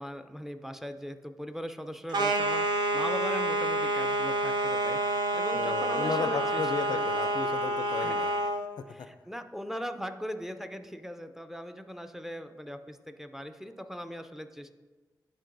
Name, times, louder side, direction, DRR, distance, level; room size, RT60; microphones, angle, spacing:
voice 1, 0.0-6.6 6.9-7.1 8.0-8.2 8.9-14.7, equal, 5° right, 8 dB, 0.4 m, -39 dB
sound 1, 2.1-8.6, right 2 dB, 85° right, 0.6 m, -28 dB
voice 2, 5.5-8.3, left 5 dB, 70° left, 10 dB, 0.4 m, -34 dB
10.5 x 4.5 x 2.6 m, 1.3 s
cardioid pair, 60°, 7 cm